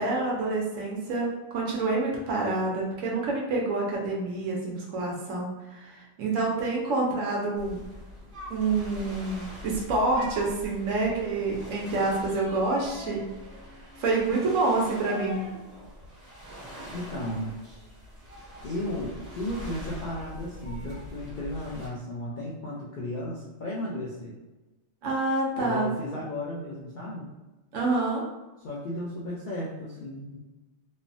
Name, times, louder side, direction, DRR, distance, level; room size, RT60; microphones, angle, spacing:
voice 1, 0.0-7.8 8.5-13.3 14.0-15.5 25.0-25.9 27.7-28.2, right 3 dB, 75° right, -2 dB, 1.0 m, -27 dB
sound 1, 7.6-21.9, equal, 25° right, 1.2 m, -42 dB
voice 2, 16.9-17.5 18.6-24.4 25.6-27.3 28.6-30.4, left 1 dB, 65° left, -5 dB, 0.5 m, -34 dB
3.1 x 2.0 x 2.5 m, 1.1 s
omnidirectional pair, 1.3 m